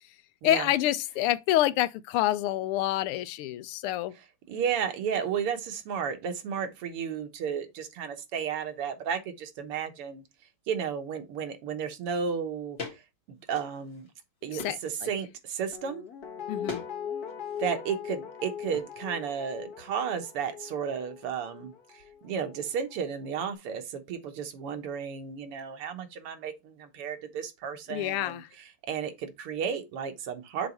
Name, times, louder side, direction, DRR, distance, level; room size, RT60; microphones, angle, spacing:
voice 1, 0.4-4.1 14.5-15.1 16.5-16.8 27.9-28.5, left 14 dB, 85° left, 1.5 m, -27 dB
voice 2, 4.5-10.2 10.7-13.0 13.3-14.1 14.4-16.0 17.6-28.4 28.9-30.7, right 7 dB, 90° right, 2.0 m, -33 dB
sound 1, 12.8-13.0 13.4-14.1 14.6-14.9 16.7-16.9 17.2-17.7 18.7-18.9, left 3 dB, 30° left, 1.8 m, -40 dB
Guitar, 15.7-22.7 23.1-23.2, left 8 dB, 50° left, 1.5 m, -40 dB
6.7 x 4.0 x 4.3 m
omnidirectional pair, 2.4 m